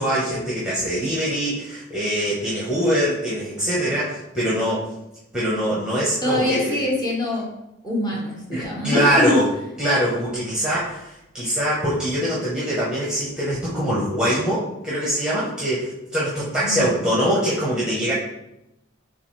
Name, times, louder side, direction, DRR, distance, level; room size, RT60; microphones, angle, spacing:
voice 1, 0.0-4.9 5.3-6.8 8.5-9.5 9.8-18.1, equal, 5° right, -8 dB, 0.9 m, -23 dB
voice 2, 6.2-7.5 7.8-9.4 16.6-16.9, left 1 dB, 20° left, -4 dB, 1.0 m, -24 dB
6.6 x 2.4 x 3.2 m, 0.88 s
head